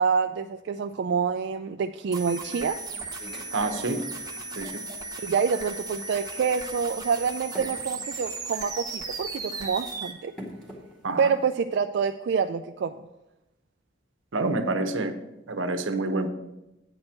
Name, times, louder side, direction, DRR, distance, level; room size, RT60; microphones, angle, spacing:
voice 1, 0.0-2.8 5.2-10.3 11.2-13.0, right 6 dB, 60° right, 7 dB, 0.3 m, -27 dB
sound 1, 2.1-10.1, right 3 dB, 20° right, 1.0 m, -36 dB
sound 2, 3.2-11.5, equal, 5° left, 1.9 m, -48 dB
voice 2, 3.5-4.0 4.6-4.8 11.0-11.3 14.3-15.1 15.5-16.3, right 2 dB, 85° right, 7 dB, 0.9 m, -27 dB
8.9 x 4.4 x 7.3 m, 0.93 s
head